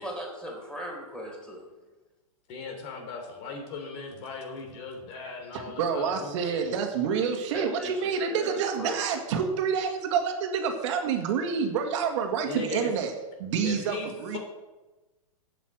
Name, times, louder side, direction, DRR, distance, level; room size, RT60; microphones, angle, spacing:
voice 1, 0.0-1.7 7.5-9.0, equal, 5° left, -1 dB, 4.2 m, -38 dB
voice 2, 2.5-6.7 12.4-12.9 13.6-14.4, left 4 dB, 45° left, 3 dB, 3.3 m, -38 dB
voice 3, 5.5-13.1 13.4-14.4, right 6 dB, 55° right, 4 dB, 2.0 m, -28 dB
8.7 x 8.2 x 7.9 m, 1.1 s
hypercardioid pair, 120°, 19 cm